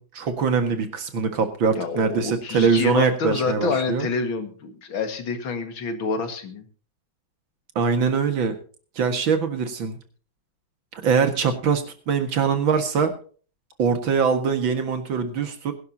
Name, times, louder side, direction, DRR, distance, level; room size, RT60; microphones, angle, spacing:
voice 1, 0.0-4.1 7.8-8.6 9.0-10.0 10.9-13.1 13.8-15.7, right 5 dB, 75° right, 8 dB, 2.5 m, -23 dB
voice 2, 1.7-6.7, left 4 dB, 85° left, 8 dB, 2.6 m, -27 dB
21.5 x 11.0 x 2.8 m, 0.40 s
omnidirectional pair, 2.1 m